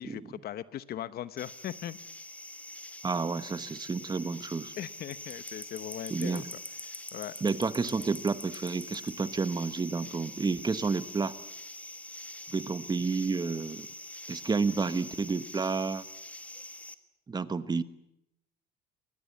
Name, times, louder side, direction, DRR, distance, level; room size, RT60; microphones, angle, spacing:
voice 1, 0.0-2.0 4.8-6.4 7.1-7.3, left 11 dB, 55° left, 15 dB, 1.0 m, -39 dB
sound 1, 1.4-16.9, left 1 dB, 5° left, 1.4 m, -44 dB
voice 2, 3.0-4.7 6.1-6.5 7.4-11.3 12.5-13.9 14.3-16.0 17.3-17.8, right 4 dB, 20° right, 14 dB, 1.0 m, -30 dB
22.5 x 19.5 x 8.5 m, 0.80 s
cardioid pair, 115°, 19 cm